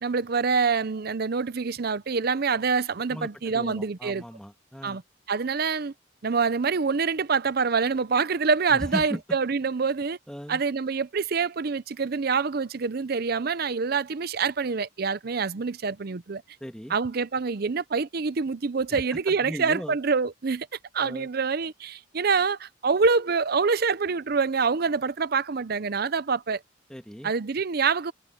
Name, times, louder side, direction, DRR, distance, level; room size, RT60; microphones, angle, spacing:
voice 1, 0.0-4.2 4.8-5.0 5.3-5.9 6.2-10.2 10.5-16.4 16.9-20.7 20.9-26.6 27.2-28.1, right 5 dB, 50° right, 0.6 m, -26 dB
voice 2, 3.1-5.0 8.7-9.2 10.3-10.6 16.6-17.0 18.9-20.0 21.0-21.3 26.9-27.3, equal, 5° left, 1.8 m, -37 dB
head